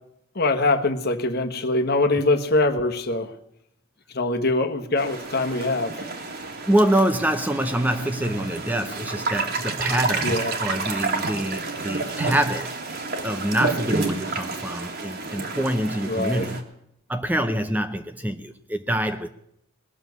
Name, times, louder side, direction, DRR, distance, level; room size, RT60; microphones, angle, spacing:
voice 1, 0.3-3.3 4.1-6.1 10.2-10.6 16.0-16.5, left 2 dB, 50° left, 1.3 m, -23 dB
sound 1, 5.0-16.6, right 3 dB, 50° right, 2.1 m, -30 dB
voice 2, 6.7-12.7 13.2-16.6 17.1-19.3, right 1 dB, 10° right, 0.6 m, -25 dB
sound 2, 11.7-11.8 12.3-12.5 12.8-12.9 13.2-14.3, right 6 dB, 65° right, 2.6 m, -44 dB
20.0 x 7.1 x 9.5 m
head